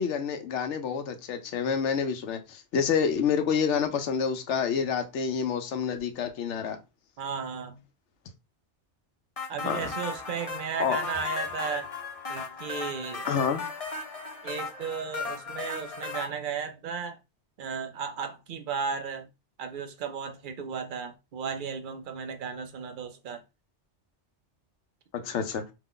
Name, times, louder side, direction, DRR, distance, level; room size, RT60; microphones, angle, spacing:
voice 1, 0.0-6.8 9.6-9.9 10.8-11.0 13.3-13.6 25.1-25.6, left 7 dB, 80° left, 0.9 m, -28 dB
voice 2, 7.2-7.8 9.5-11.9 12.3-13.3 14.4-17.2 17.6-19.3 19.6-23.4, right 6 dB, 60° right, 0.6 m, -35 dB
sound 1, 9.4-16.3, left 4 dB, 40° left, 0.6 m, -36 dB
2.9 x 2.1 x 3.7 m
omnidirectional pair, 1.2 m